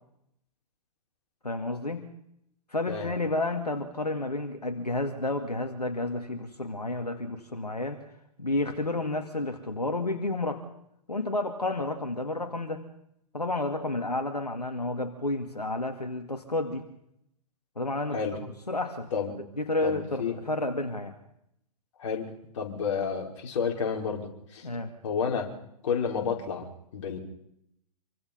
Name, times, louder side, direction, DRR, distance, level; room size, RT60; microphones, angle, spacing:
voice 1, 1.4-2.1 2.7-8.0 8.4-10.6 11.1-12.8 13.3-16.9 17.8-18.2 18.7-19.1 19.6-21.2 24.6-24.9, left 2 dB, 90° left, 5 dB, 2.5 m, -31 dB
voice 2, 19.8-20.4 22.0-24.7 25.0-25.5 25.8-26.7 26.9-27.2, left 6 dB, 50° left, 0 dB, 5.5 m, -30 dB
27.0 x 25.0 x 5.6 m, 0.76 s
figure-of-eight pair, 120°, 20 cm